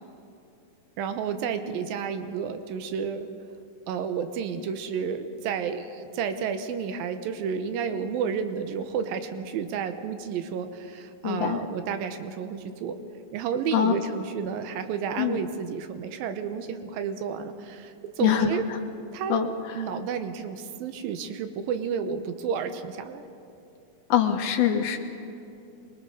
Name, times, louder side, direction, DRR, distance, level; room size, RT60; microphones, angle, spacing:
voice 1, 1.0-3.3 3.9-13.0 13.3-18.6 19.1-19.4 19.8-23.2, right 7 dB, 80° right, 8 dB, 2.7 m, -31 dB
voice 2, 11.2-11.6 13.7-13.9 15.2-15.4 18.2-18.8 19.3-19.9 24.1-25.0, left 9 dB, 80° left, 2 dB, 3.0 m, -24 dB
25.5 x 21.5 x 4.9 m, 2.7 s
omnidirectional pair, 4.2 m